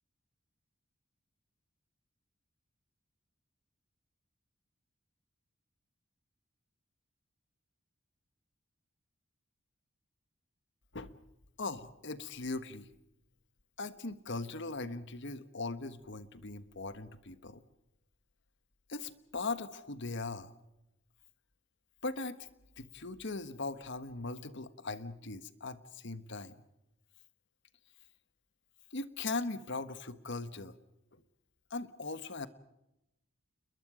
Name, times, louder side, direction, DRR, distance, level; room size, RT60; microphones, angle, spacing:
voice 1, 11.6-12.9 13.8-17.6 18.9-20.5 22.0-22.4 22.8-26.5 28.9-30.7 31.7-32.5, left 3 dB, 60° left, 13 dB, 1.4 m, -39 dB
29.0 x 22.5 x 5.1 m, 0.88 s
head